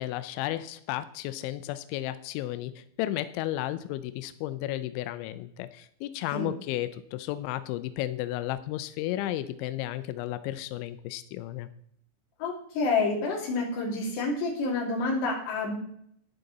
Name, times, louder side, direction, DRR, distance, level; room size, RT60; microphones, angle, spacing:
voice 1, 0.0-11.7, left 14 dB, 85° left, 13 dB, 2.7 m, -33 dB
voice 2, 12.4-15.8, left 3 dB, 60° left, -1 dB, 4.4 m, -28 dB
11.5 x 10.5 x 4.0 m, 0.67 s
omnidirectional pair, 5.9 m